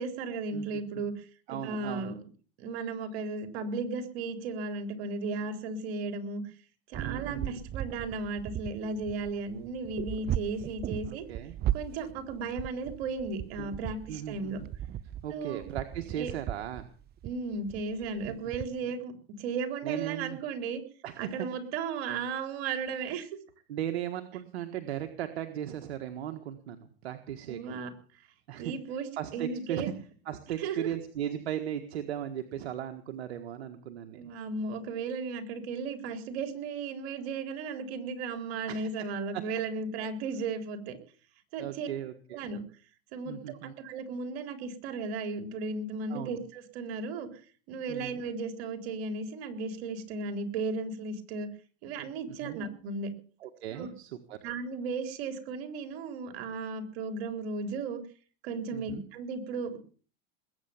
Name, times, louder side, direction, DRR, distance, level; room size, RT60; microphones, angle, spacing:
voice 1, 0.0-2.2 2.6-6.4 6.9-11.2 11.7-14.6 15.3-15.6 16.2-16.3 17.2-19.1 19.4-20.8 21.2-23.3 27.5-27.9 28.6-29.1 29.3-29.9 30.6-30.9 34.2-41.0 41.5-41.9 42.3-42.6 43.1-47.3 47.7-51.5 51.8-53.1 53.7-53.9 54.4-58.0 58.4-59.8, right 4 dB, 65° right, 7 dB, 3.9 m, -35 dB
voice 2, 0.5-1.0 1.5-2.1 6.9-7.6 11.1-11.6 14.1-14.7 15.2-16.9 18.3-18.4 18.8-18.9 19.8-20.4 21.0-21.4 23.7-27.8 28.5-29.9 30.2-34.3 38.7-38.9 39.3-39.4 40.0-40.1 41.6-42.5 43.2-43.8 46.1-46.4 47.9-48.2 52.3-52.6 53.4-54.4 58.7-59.0, right 10 dB, 85° right, 7 dB, 1.6 m, -37 dB
sound 1, 6.9-18.6, right 11 dB, 30° right, 0.7 m, -37 dB
20.5 x 9.1 x 7.2 m, 0.42 s
supercardioid pair, 110°, 32 cm